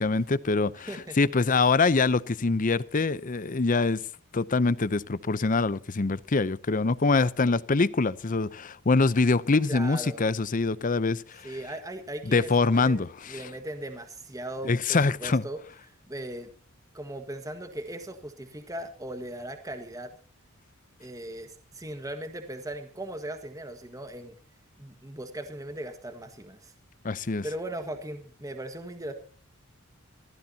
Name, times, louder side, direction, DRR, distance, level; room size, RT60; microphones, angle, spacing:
voice 1, 0.0-4.0 4.3-11.6 12.3-13.1 14.6-15.4 27.0-27.5, left 3 dB, 40° left, 0.6 m, -24 dB
voice 2, 9.7-10.2 11.4-15.6 16.1-16.5 16.9-20.1 21.0-24.4 24.8-26.7 27.4-29.1, right 1 dB, 15° right, 1.6 m, -38 dB
25.0 x 15.0 x 2.8 m
head